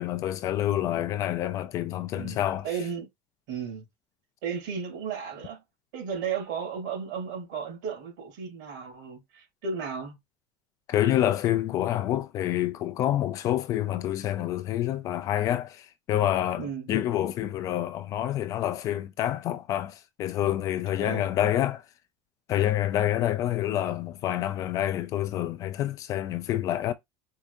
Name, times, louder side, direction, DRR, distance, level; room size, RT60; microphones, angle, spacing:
voice 1, 0.0-2.7 10.9-21.8 22.5-26.9, left 12 dB, 35° left, 0.3 m, -27 dB
voice 2, 2.6-3.1 3.5-3.8 4.4-5.6 5.9-10.2 16.6-16.9 21.0-21.2, right 6 dB, 70° right, 2.6 m, -34 dB
4.6 x 2.6 x 2.5 m
cardioid pair, 165°, 10 cm